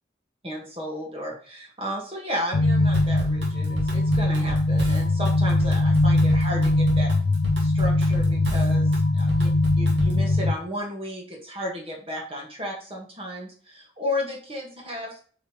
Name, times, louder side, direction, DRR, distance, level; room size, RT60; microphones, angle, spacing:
voice 1, 0.4-7.1 7.6-9.5 9.8-15.2, left 1 dB, 30° right, -1 dB, 1.9 m, -33 dB
sound 1, 2.5-10.5, left 2 dB, 80° left, 0.5 m, -21 dB
Drum kit / Drum, 2.9-10.3, equal, 80° right, 2.2 m, -32 dB
8.2 x 5.4 x 3.2 m, 0.43 s
head